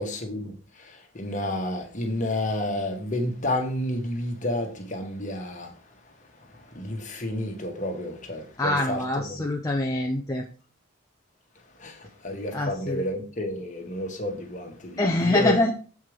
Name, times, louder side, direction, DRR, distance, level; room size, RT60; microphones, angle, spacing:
voice 1, 0.0-5.7 6.5-9.5 11.8-15.6, left 1 dB, 35° left, 1.6 m, -30 dB
voice 2, 8.6-10.4 12.5-13.0 15.0-15.7, left 1 dB, 15° left, 0.7 m, -25 dB
7.9 x 4.7 x 5.0 m
head